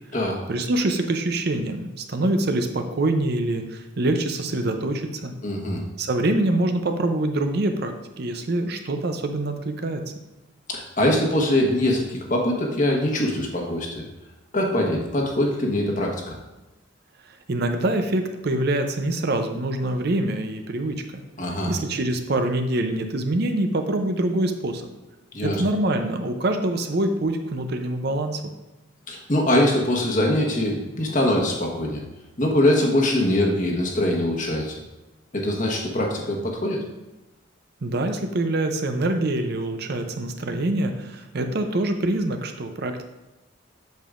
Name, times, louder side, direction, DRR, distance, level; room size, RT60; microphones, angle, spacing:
voice 1, 0.5-5.3 6.0-10.0 17.5-21.2 21.7-24.9 25.4-28.4 37.8-43.0, right 1 dB, 50° right, 6 dB, 0.6 m, -25 dB
voice 2, 5.4-5.8 10.7-14.0 14.5-16.4 21.4-21.7 25.3-25.6 29.1-32.0 32.4-34.8 35.3-36.8, left 1 dB, 40° left, 0 dB, 1.2 m, -23 dB
8.0 x 6.9 x 2.5 m, 1.0 s
head